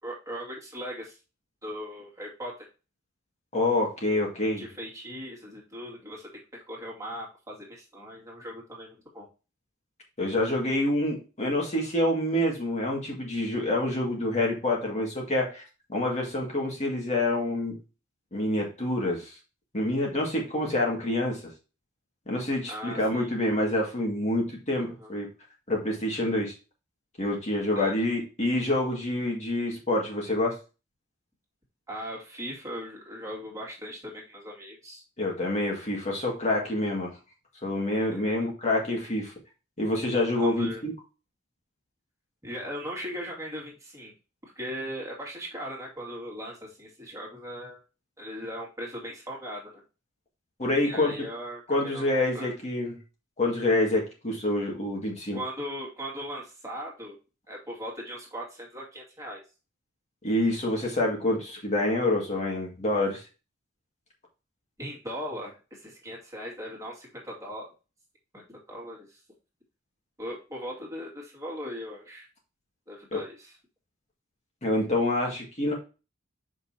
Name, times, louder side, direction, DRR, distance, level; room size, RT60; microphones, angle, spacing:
voice 1, 0.0-1.2 1.6-2.7 4.6-9.3 22.7-23.3 24.8-25.1 27.7-27.9 31.9-35.0 38.1-38.3 40.3-40.8 42.4-44.1 44.4-47.8 48.2-49.8 50.8-52.5 55.3-57.2 57.5-59.4 64.8-67.7 68.3-69.2 70.2-72.3 72.9-73.6, equal, 15° right, -3 dB, 2.4 m, -39 dB
voice 2, 3.5-4.6 10.2-17.7 18.3-19.3 19.7-21.4 22.3-25.3 25.7-26.5 27.2-30.6 35.2-37.1 37.6-39.3 39.8-40.9 50.6-51.1 51.7-52.9 53.4-55.4 60.2-63.2 73.1-73.2 74.6-75.7, left 1 dB, 35° left, -1 dB, 2.1 m, -27 dB
6.7 x 5.5 x 2.8 m, 0.31 s
head